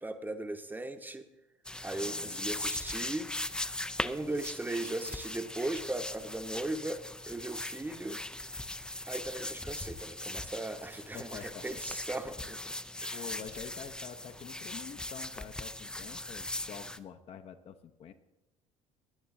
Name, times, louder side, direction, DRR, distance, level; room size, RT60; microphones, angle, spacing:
voice 1, 0.0-1.2 1.8-3.3 4.0-8.2 9.1-12.7 13.0-13.2, right 2 dB, 10° right, 8 dB, 1.0 m, -38 dB
sound 1, 1.6-17.0, left 1 dB, 5° left, 0.5 m, -39 dB
voice 2, 2.0-2.6 11.1-12.0 13.1-18.1, left 7 dB, 35° left, 8 dB, 0.8 m, -47 dB
17.5 x 10.5 x 3.7 m, 0.94 s
figure-of-eight pair, 60°, 17 cm